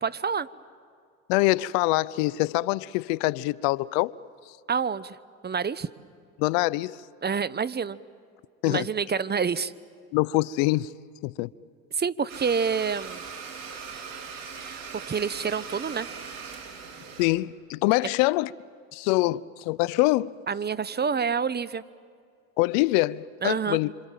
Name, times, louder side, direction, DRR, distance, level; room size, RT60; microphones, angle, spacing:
voice 1, 0.0-0.5 4.7-5.2 5.4-5.9 7.2-8.0 8.6-9.7 11.9-13.2 14.6-16.1 20.5-21.8 23.4-23.8, right 6 dB, 25° right, 1.0 m, -28 dB
voice 2, 1.3-4.1 6.4-7.0 8.6-8.9 10.1-10.9 11.2-11.5 17.2-18.5 18.9-20.3 22.6-23.9, left 19 dB, 75° left, 0.7 m, -24 dB
Domestic sounds home sounds, 12.3-17.3, right 6 dB, 60° right, 5.2 m, -40 dB
27.5 x 27.0 x 7.6 m
hypercardioid pair, 75°, 39 cm